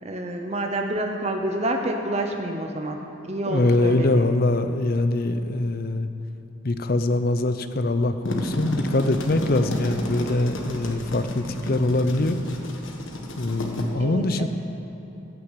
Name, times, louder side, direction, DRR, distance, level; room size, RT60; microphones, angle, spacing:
voice 1, 0.0-4.3 14.0-14.5, right 1 dB, 30° right, 3 dB, 0.9 m, -28 dB
voice 2, 3.5-6.1 6.6-12.4 13.4-14.5, left 2 dB, 45° left, 10 dB, 0.6 m, -23 dB
sound 1, 8.0-13.8, equal, 70° left, 1.5 m, -32 dB
15.5 x 6.5 x 8.3 m, 3.0 s
head